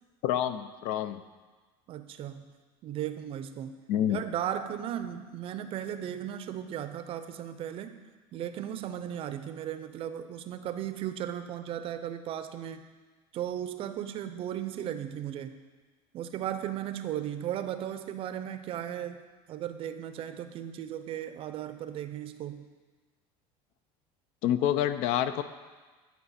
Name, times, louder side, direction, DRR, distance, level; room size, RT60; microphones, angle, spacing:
voice 1, 0.2-1.2 3.9-4.2 24.4-25.4, left 11 dB, 70° left, 12 dB, 0.4 m, -27 dB
voice 2, 1.9-2.4 2.8-3.8 4.1-8.0 8.3-12.8 13.3-15.6 16.1-19.2 19.5-22.7, right 10 dB, 45° right, 10 dB, 0.5 m, -36 dB
10.5 x 4.4 x 4.2 m, 1.3 s
supercardioid pair, 125°, 13 cm